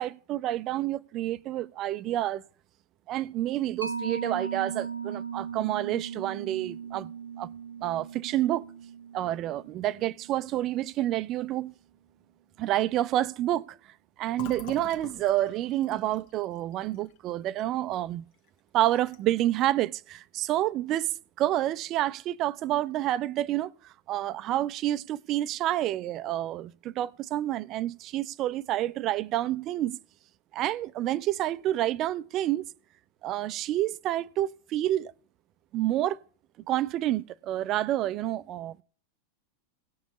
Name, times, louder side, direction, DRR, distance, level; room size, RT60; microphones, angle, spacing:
voice 1, 0.0-2.4 3.1-7.1 7.4-7.5 7.8-8.6 9.1-11.7 12.6-13.8 14.2-18.2 18.7-21.1 21.4-23.7 24.1-30.0 30.5-32.6 33.2-35.1 35.7-36.2 36.7-38.8, right 13 dB, 35° right, 0.5 m, -28 dB
Mallet percussion, 3.8-10.9, right 6 dB, 85° right, 0.5 m, -38 dB
Fill (with liquid), 14.3-18.0 18.3-18.5 18.8-19.4, left 8 dB, 45° left, 1.2 m, -47 dB
18.5 x 7.0 x 3.1 m
figure-of-eight pair, 90°, 0 cm